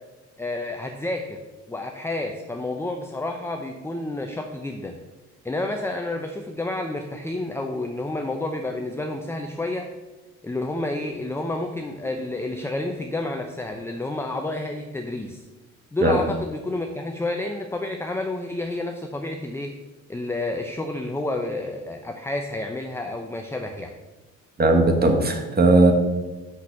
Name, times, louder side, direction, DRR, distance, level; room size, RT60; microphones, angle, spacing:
voice 1, 0.4-1.4 1.7-5.0 5.4-9.9 10.4-15.4 15.9-19.7 20.1-23.9, left 2 dB, 10° left, 4 dB, 0.6 m, -30 dB
voice 2, 24.6-25.9, right 2 dB, 30° right, 5 dB, 1.5 m, -17 dB
6.2 x 5.8 x 6.0 m, 1.2 s
cardioid pair, 90°, 30 cm